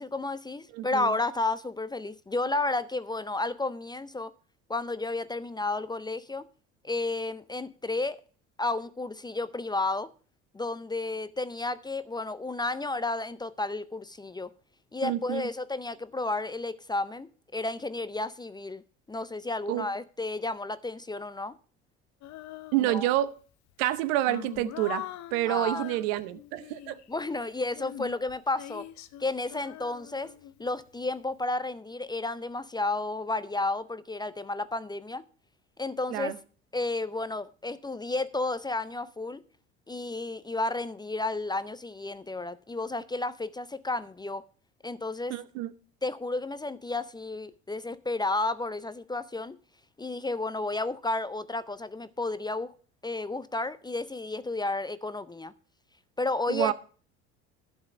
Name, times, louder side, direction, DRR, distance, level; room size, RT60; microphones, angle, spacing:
voice 1, 0.0-4.3 4.7-6.5 6.8-8.2 8.6-10.1 10.5-14.5 14.9-18.8 19.1-21.5 22.8-23.1 25.5-25.8 27.1-28.9 29.2-30.3 30.6-35.2 35.8-36.4 36.7-39.4 39.9-44.4 44.8-45.4 46.0-49.6 50.0-52.7 53.0-55.5 56.2-56.7, left 2 dB, 10° left, 0.5 m, -32 dB
voice 2, 0.7-1.1 15.0-15.4 19.7-19.9 22.7-23.3 23.8-25.0 25.3-27.0 36.1-36.4 45.3-45.7 56.5-56.7, right 14 dB, 70° right, 0.9 m, -28 dB
Female singing, 22.2-23.3 23.9-27.1 27.7-30.9, left 14 dB, 55° left, 0.9 m, -43 dB
11.5 x 5.5 x 7.0 m
hypercardioid pair, 70°, 34 cm